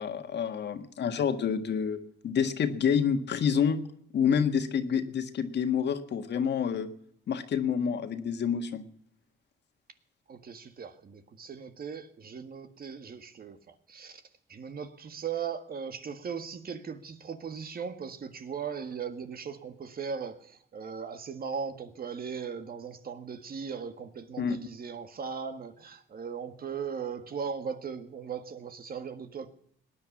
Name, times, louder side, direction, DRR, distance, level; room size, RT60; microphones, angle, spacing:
voice 1, 0.0-3.8 4.1-6.9 7.3-8.8 24.4-24.6, left 7 dB, 60° left, 8 dB, 1.7 m, -28 dB
voice 2, 10.3-14.2 14.5-29.5, right 6 dB, 50° right, 9 dB, 1.7 m, -38 dB
18.5 x 10.0 x 7.3 m, 0.66 s
cardioid pair, 90°, 20 cm